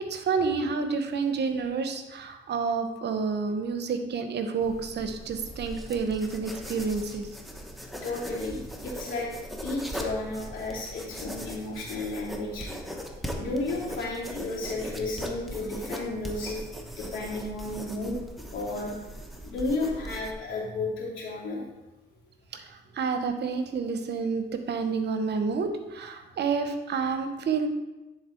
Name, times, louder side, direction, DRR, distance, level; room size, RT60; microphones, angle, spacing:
voice 1, 0.0-7.3 22.5-27.7, right 5 dB, 60° right, 8 dB, 0.9 m, -29 dB
sound 1, 4.6-20.3, equal, ahead, 1.0 m, -39 dB
voice 2, 8.0-9.3 9.6-12.7 13.4-16.6 17.0-18.2 18.5-18.9 19.4-21.6, left 2 dB, 75° left, -4 dB, 2.8 m, -32 dB
10.0 x 4.0 x 4.5 m, 1.0 s
cardioid pair, 90°, 20 cm